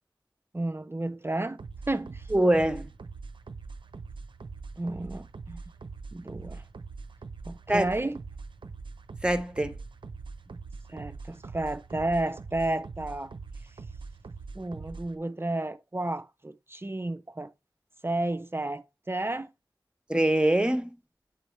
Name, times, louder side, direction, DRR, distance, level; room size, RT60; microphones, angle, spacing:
voice 1, 0.5-1.6 1.9-2.2 4.8-5.6 6.1-6.6 7.5-8.2 10.5-10.6 10.9-13.3 14.6-17.5 18.0-19.5, right 2 dB, 30° right, 0.4 m, -32 dB
sound 1, 1.6-15.2, right 4 dB, 90° right, 0.5 m, -43 dB
voice 2, 2.3-2.9 7.7-7.9 9.2-9.8 20.1-20.9, right 1 dB, 10° right, 0.8 m, -24 dB
7.8 x 3.4 x 4.1 m
wide cardioid pair, 50°, 8 cm